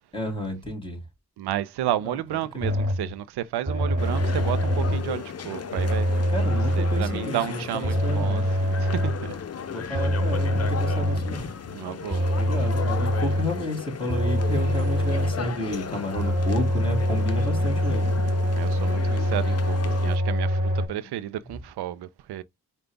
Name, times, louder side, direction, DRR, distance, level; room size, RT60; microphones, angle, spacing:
voice 1, 0.1-1.0 2.0-2.2 2.5-2.7 6.3-8.5 9.7-11.5 12.3-18.1, left 1 dB, 15° left, 3.0 m, -31 dB
voice 2, 1.4-6.1 6.5-9.3 9.9-10.0 11.7-12.3 18.5-22.4, right 12 dB, 80° right, 0.5 m, -32 dB
sound 1, 2.6-3.1 3.7-5.2 5.8-7.2 7.8-9.3 9.9-11.4 12.1-13.6 14.1-15.5 16.2-20.9, equal, 20° right, 1.9 m, -24 dB
sound 2, 4.0-20.2, left 7 dB, 40° left, 0.7 m, -36 dB
5.2 x 2.3 x 3.4 m
cardioid pair, 70°, 38 cm